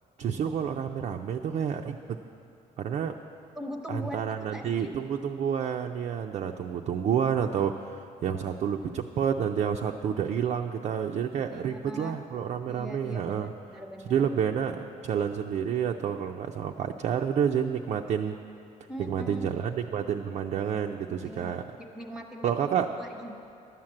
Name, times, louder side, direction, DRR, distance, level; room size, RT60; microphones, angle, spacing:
voice 1, 0.2-2.2 2.8-3.1 3.9-13.5 14.1-18.4 19.0-21.6 22.4-22.9, right 8 dB, 50° right, 3 dB, 0.4 m, -29 dB
voice 2, 3.6-4.9 11.5-12.2 12.7-14.3 18.9-19.5 21.2-21.5 21.9-22.7 23.0-23.4, equal, 5° right, 2 dB, 0.8 m, -41 dB
11.0 x 7.3 x 7.7 m, 2.7 s
cardioid pair, 135°, 15 cm